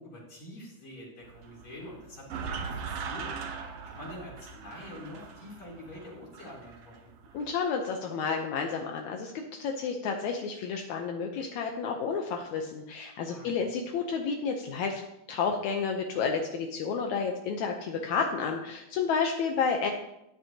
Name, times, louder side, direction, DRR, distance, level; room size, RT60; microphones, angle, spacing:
voice 1, 0.0-3.4 3.9-7.1 13.3-13.7, left 1 dB, 55° left, -4 dB, 4.5 m, -46 dB
sound 1, 1.2-7.5, right 5 dB, 65° right, 1.9 m, -40 dB
voice 2, 7.3-15.0 15.3-19.9, left 5 dB, 75° left, 3 dB, 2.0 m, -31 dB
13.0 x 9.9 x 2.9 m, 0.85 s
omnidirectional pair, 3.5 m